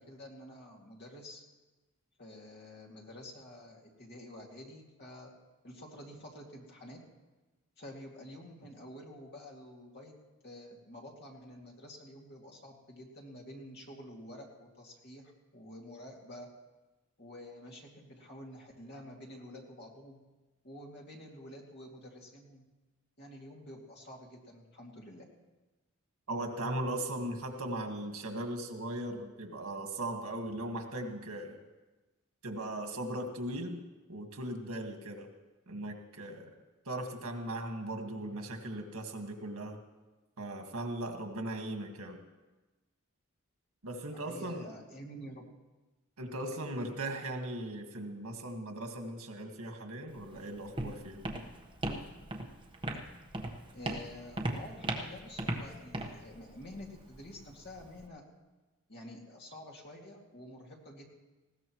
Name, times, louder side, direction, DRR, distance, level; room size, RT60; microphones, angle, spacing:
voice 1, 0.0-1.4 2.2-5.3 5.6-7.0 7.8-10.1 10.4-16.5 17.2-20.2 20.6-22.6 23.2-25.3 44.1-45.4 53.7-58.2 58.9-61.0, left 1 dB, 50° left, -1 dB, 2.4 m, -49 dB
voice 2, 26.3-31.5 32.4-33.8 34.1-35.3 35.7-36.5 36.9-39.8 40.4-42.2 43.8-44.7 46.2-51.2, right 1 dB, 90° right, 4 dB, 1.8 m, -38 dB
Walk footsteps, 50.1-58.1, right 1 dB, 25° right, 1.2 m, -39 dB
19.5 x 16.0 x 3.1 m, 1.2 s
head